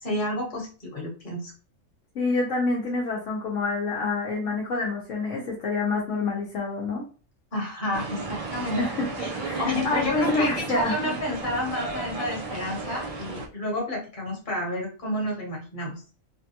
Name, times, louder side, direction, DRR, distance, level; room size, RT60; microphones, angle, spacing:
voice 1, 0.0-1.5 7.5-8.8 9.2-9.3 9.6-16.0, left 1 dB, 40° left, -1 dB, 1.3 m, -30 dB
voice 2, 2.1-7.0 8.8-11.1, left 3 dB, 75° left, -3 dB, 1.1 m, -27 dB
sound 1, 7.9-13.5, right 3 dB, 60° right, 0.3 m, -33 dB
3.3 x 2.2 x 2.8 m, 0.36 s
omnidirectional pair, 1.3 m